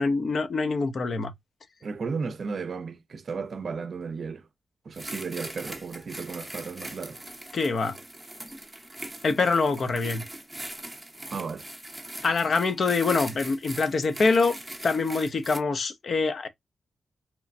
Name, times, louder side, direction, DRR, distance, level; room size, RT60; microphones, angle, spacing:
voice 1, 0.0-1.3 7.5-8.0 9.2-10.2 12.2-16.5, left 4 dB, 55° left, 0.5 m, -25 dB
voice 2, 1.8-4.4 4.9-7.2 11.3-11.7, right 5 dB, 55° right, 0.4 m, -34 dB
sound 1, 4.9-15.6, right 1 dB, 10° right, 0.6 m, -41 dB
3.0 x 2.1 x 2.4 m
cardioid pair, 75°, 0 cm